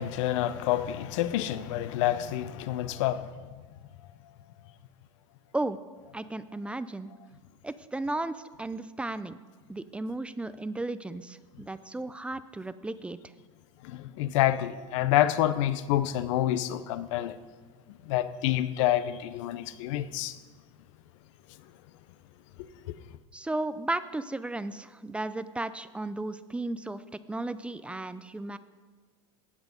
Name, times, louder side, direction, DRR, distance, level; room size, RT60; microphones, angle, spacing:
voice 1, 0.0-3.3 13.8-17.4 18.1-20.4 22.9-23.0, left 13 dB, 70° left, 0.7 m, -28 dB
voice 2, 6.1-7.1 7.6-9.4 9.7-13.2 23.3-27.0 27.3-28.6, right 2 dB, 5° right, 0.3 m, -34 dB
17.0 x 6.2 x 5.2 m
supercardioid pair, 115°, 16 cm